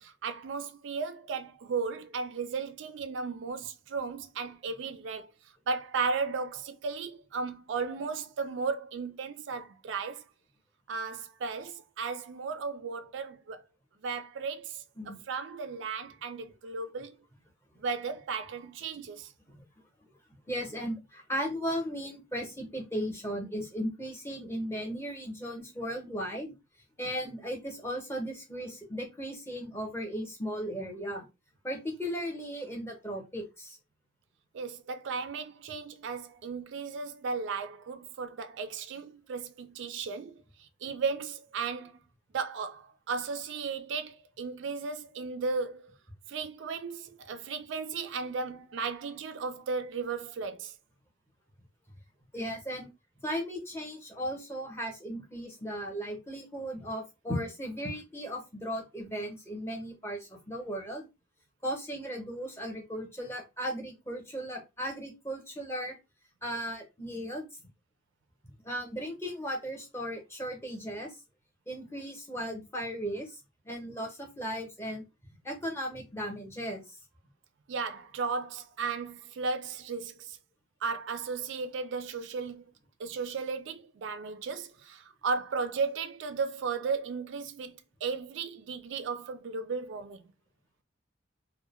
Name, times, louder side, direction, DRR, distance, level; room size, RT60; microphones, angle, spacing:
voice 1, 0.0-5.3 5.7-10.2 10.9-13.6 14.0-14.8 15.3-17.2 17.8-19.3 34.5-41.9 42.3-45.9 46.3-50.7 77.7-80.4 80.8-82.6 83.0-90.2, right 5 dB, 70° right, 0.3 m, -35 dB
voice 2, 20.5-26.5 27.0-31.3 31.6-33.8 52.3-52.9 53.2-61.1 61.6-66.0 66.4-67.5 68.6-71.2 71.7-75.0 75.4-77.0, equal, 10° left, 0.6 m, -36 dB
2.3 x 2.1 x 2.9 m
head